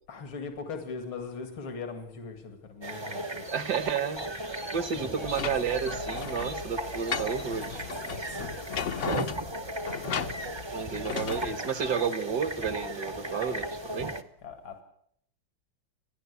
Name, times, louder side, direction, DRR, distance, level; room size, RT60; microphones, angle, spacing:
voice 1, 0.1-3.4 4.9-5.3 8.3-8.6 10.0-10.3 14.4-14.8, left 4 dB, 85° left, 6 dB, 3.1 m, -40 dB
sound 1, 2.8-14.2, right 1 dB, 25° right, 0.5 m, -36 dB
voice 2, 3.5-4.3 4.7-7.8 10.7-14.2, right 7 dB, 55° right, 12 dB, 1.7 m, -31 dB
sound 2, 5.2-11.4, left 7 dB, 50° left, 0.9 m, -36 dB
30.0 x 11.0 x 8.2 m, 0.70 s
omnidirectional pair, 2.2 m